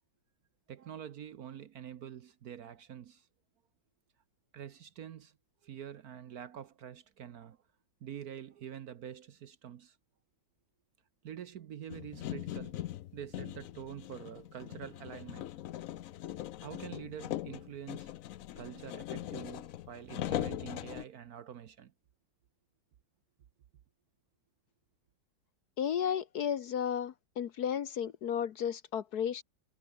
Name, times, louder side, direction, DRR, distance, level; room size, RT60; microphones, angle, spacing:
voice 1, 0.7-3.3 4.5-5.3 5.6-7.6 8.0-10.0 11.2-12.8 13.1-15.5 16.6-18.1 18.6-21.9, right 9 dB, 60° right, 1.2 m, -46 dB
sound 1, 11.9-21.0, left 13 dB, 80° left, 0.7 m, -40 dB
voice 2, 25.8-29.4, left 8 dB, 60° left, 1.3 m, -33 dB
omnidirectional pair, 2.1 m